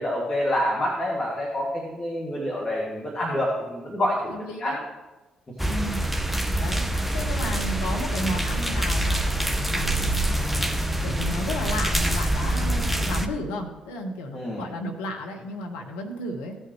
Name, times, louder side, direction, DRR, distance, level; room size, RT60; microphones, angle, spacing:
voice 1, 0.0-4.8 14.3-14.6, left 1 dB, 35° left, -3 dB, 2.3 m, -27 dB
voice 2, 4.3-4.8 5.6-6.0 6.6-10.8 11.0-16.6, left 1 dB, 75° left, 3 dB, 1.1 m, -33 dB
sound 1, 5.6-13.3, right 1 dB, 5° right, 1.0 m, -25 dB
16.5 x 6.5 x 3.2 m, 1.1 s
hypercardioid pair, 40°, 3 cm